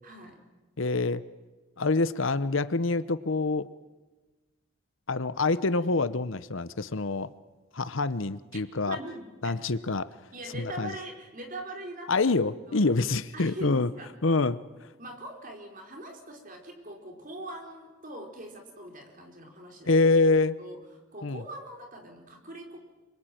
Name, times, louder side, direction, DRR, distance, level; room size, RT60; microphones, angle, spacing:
voice 1, 0.0-0.4 8.9-9.5 10.3-12.3 12.7-12.8 13.3-14.1 15.0-19.9 20.6-20.8 21.1-22.8, right 1 dB, 40° right, 3 dB, 4.5 m, -42 dB
voice 2, 0.8-1.2 1.8-3.7 5.1-7.3 7.7-9.0 9.4-10.1 10.5-10.9 12.1-13.9 14.2-14.6 19.9-20.6 21.2-21.4, left 3 dB, 65° left, 15 dB, 0.9 m, -26 dB
27.0 x 24.0 x 9.1 m, 1.2 s
head